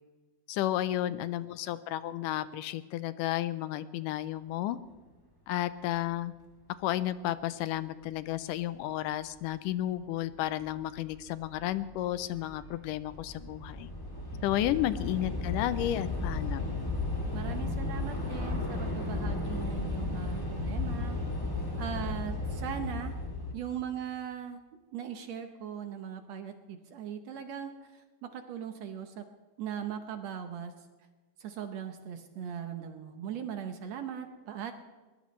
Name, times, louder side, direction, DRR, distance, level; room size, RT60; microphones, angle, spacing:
voice 1, 0.5-4.8 5.5-6.3 6.8-13.9 14.4-16.8, left 13 dB, 80° left, 14 dB, 2.2 m, -32 dB
Train / Subway metro underground, 10.7-10.8 11.0-23.5, left 2 dB, 10° left, 1.3 m, -34 dB
voice 2, 17.3-21.2 21.8-23.1 23.5-24.6 24.9-29.3 29.6-30.7 31.4-34.7, right 8 dB, 70° right, 7 dB, 1.8 m, -39 dB
21.5 x 19.0 x 3.2 m, 1.3 s
omnidirectional pair, 3.8 m